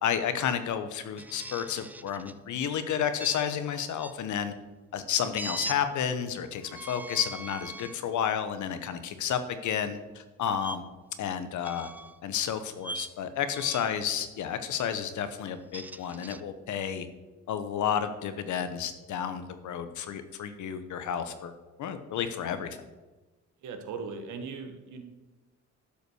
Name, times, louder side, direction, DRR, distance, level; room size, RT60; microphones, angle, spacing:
voice 1, 0.0-4.5 4.9-10.8 11.2-11.9 12.2-17.1 17.5-21.5 21.8-22.8, left 8 dB, 75° left, 10 dB, 1.1 m, -31 dB
sound 1, 1.2-2.4 3.2-4.2 5.3-5.8 6.6-8.0 8.6-8.8 10.6-10.8 11.6-12.2 12.8-13.1 13.5-14.0 15.5-16.4, right 2 dB, 5° right, 0.3 m, -41 dB
voice 2, 23.6-25.0, right 5 dB, 80° right, 6 dB, 1.5 m, -38 dB
11.5 x 5.4 x 6.4 m, 1.2 s
cardioid pair, 90°, 30 cm